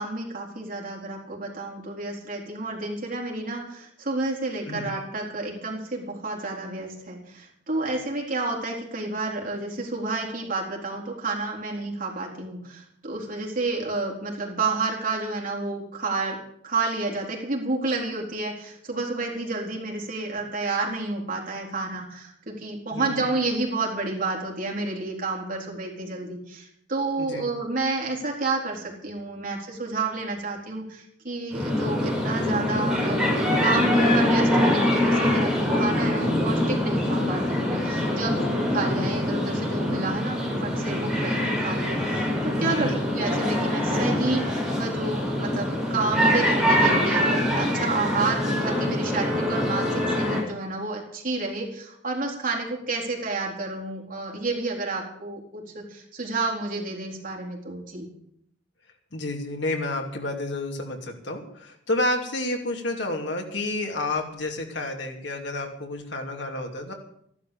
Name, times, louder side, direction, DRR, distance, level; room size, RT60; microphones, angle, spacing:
voice 1, 0.0-16.4 16.6-33.2 33.6-58.1, right 3 dB, 50° right, -1 dB, 4.1 m, -30 dB
voice 2, 4.7-5.0 22.9-23.3 27.2-27.5 42.6-43.0 59.1-66.9, left 2 dB, 75° left, 2 dB, 2.8 m, -30 dB
sound 1, 31.5-50.4, left 1 dB, 5° right, 7.1 m, -24 dB
14.0 x 11.5 x 7.1 m, 0.71 s
head